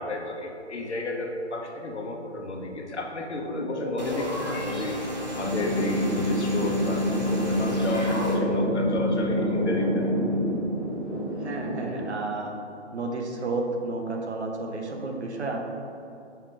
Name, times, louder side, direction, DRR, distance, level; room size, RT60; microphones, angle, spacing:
voice 1, 0.0-5.1 5.3-10.1, left 2 dB, 70° left, 2 dB, 1.0 m, -32 dB
sound 1, 3.3-12.1, right 1 dB, 5° left, 0.7 m, -33 dB
sound 2, 4.0-8.4, equal, 40° right, 0.7 m, -34 dB
sound 3, 5.4-10.5, left 1 dB, 10° right, 1.4 m, -26 dB
voice 2, 11.4-12.5 12.9-15.6, right 3 dB, 70° right, 2 dB, 1.0 m, -31 dB
5.5 x 3.8 x 4.8 m, 2.7 s
hypercardioid pair, 170°, 35 cm